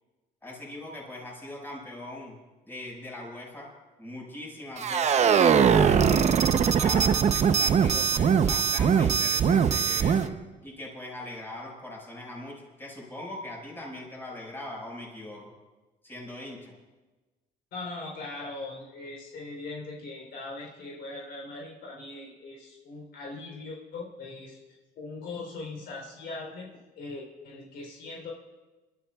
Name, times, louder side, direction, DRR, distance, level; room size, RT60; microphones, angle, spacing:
voice 1, 0.4-2.4 2.7-3.7 4.0-6.3 6.6-10.2 10.6-15.5 16.0-16.7, left 1 dB, 15° left, -2 dB, 5.7 m, -40 dB
sound 1, 4.8-10.3, right 7 dB, 40° right, 0.8 m, -21 dB
voice 2, 17.7-26.7 27.0-28.3, left 3 dB, 70° left, -1 dB, 3.7 m, -40 dB
28.5 x 13.0 x 2.4 m, 1.2 s
cardioid pair, 110°, 17 cm